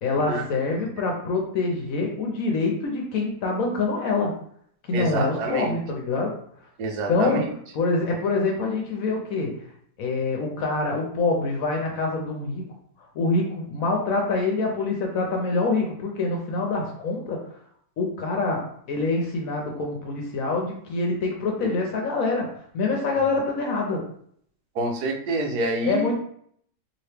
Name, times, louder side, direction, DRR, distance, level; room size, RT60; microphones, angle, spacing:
voice 1, 0.0-4.3 4.9-6.4 7.1-9.6 10.0-12.7 13.1-17.4 18.0-24.1 25.9-26.2, left 3 dB, 65° left, 1 dB, 0.9 m, -25 dB
voice 2, 4.9-5.8 6.8-7.5 24.8-26.1, right 2 dB, 75° right, 2 dB, 1.1 m, -27 dB
2.9 x 2.8 x 3.3 m, 0.65 s
omnidirectional pair, 1.8 m